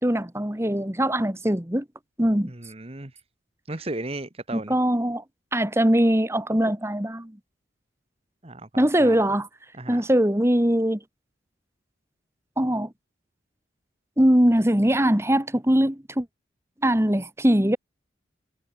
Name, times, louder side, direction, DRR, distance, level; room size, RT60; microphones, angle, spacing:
voice 1, 0.0-1.8 2.2-2.5 4.5-5.2 5.5-7.4 8.8-9.5 9.9-11.0 12.6-12.9 14.2-16.3 16.8-17.8, equal, 15° right, 1.6 m, -21 dB
voice 2, 2.5-3.1 3.7-4.7 8.4-9.2 9.7-10.0, right 2 dB, 30° right, 1.3 m, -35 dB
head